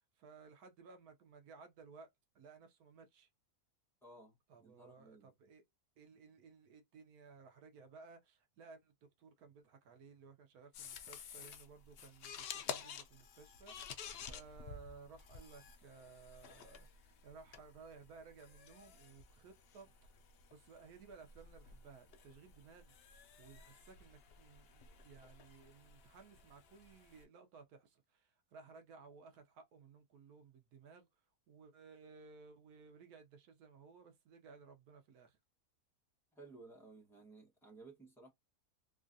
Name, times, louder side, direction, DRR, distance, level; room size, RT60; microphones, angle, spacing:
voice 1, 0.0-3.3 4.5-5.6 6.0-20.2 20.5-35.4, right 4 dB, 75° right, 1.1 m, -59 dB
voice 2, 4.0-5.3 36.3-38.3, right 3 dB, ahead, 0.7 m, -57 dB
sound 1, 10.7-27.2, left 7 dB, 75° left, 0.5 m, -52 dB
3.1 x 2.4 x 2.5 m
omnidirectional pair, 1.6 m